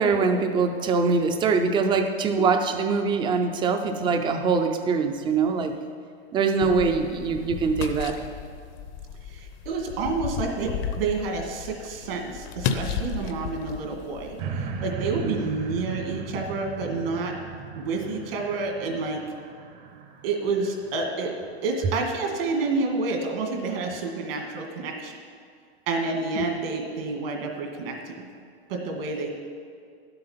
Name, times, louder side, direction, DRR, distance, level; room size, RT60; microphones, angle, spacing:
voice 1, 0.0-5.7 6.3-8.3 15.2-15.5, right 4 dB, 15° right, 6 dB, 0.5 m, -23 dB
sound 1, 6.6-14.4, left 7 dB, 45° left, 0.8 m, -34 dB
voice 2, 9.3-17.4 17.7-19.2 20.2-21.3 21.6-25.2 25.9-28.3 28.7-29.3, right 3 dB, 65° right, 2 dB, 2.1 m, -29 dB
sound 2, 14.4-21.8 22.3-22.4, right 5 dB, 50° right, 1.1 m, -37 dB
11.5 x 7.8 x 5.7 m, 2.2 s
supercardioid pair, 155°, 31 cm